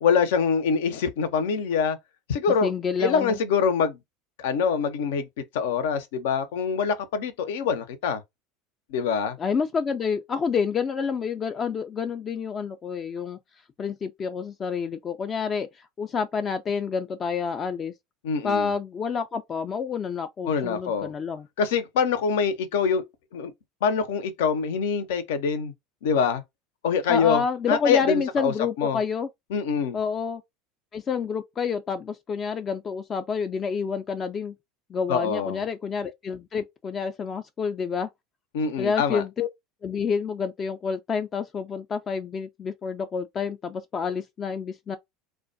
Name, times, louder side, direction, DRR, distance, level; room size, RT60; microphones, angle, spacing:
voice 1, 0.0-2.0 2.3-2.7 3.0-4.0 4.4-5.3 5.5-8.2 8.9-9.4 18.2-18.7 20.5-21.1 21.6-23.0 23.3-23.5 23.8-25.7 26.0-26.4 26.8-29.0 29.5-30.0 35.1-35.6 38.5-39.2, left 6 dB, 75° left, 0.6 m, -24 dB
voice 2, 2.6-3.4 9.4-13.4 13.8-17.9 18.4-21.5 27.1-29.3 29.9-30.4 30.9-34.5 34.9-38.1 38.8-39.5 39.8-45.0, left 6 dB, 35° left, 0.3 m, -28 dB
2.2 x 2.2 x 2.6 m
hypercardioid pair, 85°, 0 cm